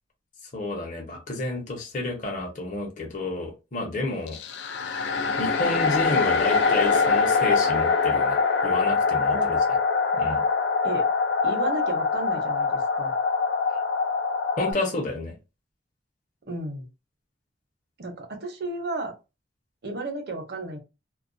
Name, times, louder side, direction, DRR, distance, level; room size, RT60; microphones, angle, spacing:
voice 1, 0.5-4.4 5.4-9.6 10.1-10.4 14.6-15.3, left 2 dB, 45° left, 1 dB, 0.8 m, -30 dB
sound 1, 4.3-14.7, left 4 dB, 75° left, 0.4 m, -23 dB
voice 2, 11.4-13.1 16.5-16.9 18.0-19.1 19.8-20.8, right 2 dB, 65° right, 4 dB, 0.7 m, -33 dB
2.3 x 2.2 x 2.6 m, 0.27 s
head